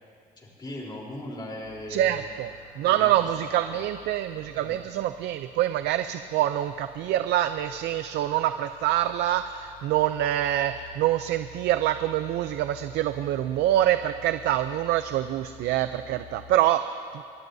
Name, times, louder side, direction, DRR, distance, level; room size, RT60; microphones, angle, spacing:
voice 1, 0.4-2.3 2.8-3.8 4.5-4.8, left 1 dB, 25° left, -2 dB, 3.7 m, -39 dB
Livestock farm animals working animals, 1.6-16.6, left 4 dB, 85° left, 2.3 m, -50 dB
voice 2, 1.9-17.2, right 13 dB, 80° right, 10 dB, 0.5 m, -25 dB
25.0 x 20.0 x 2.7 m, 2.5 s
cardioid pair, 110°, 17 cm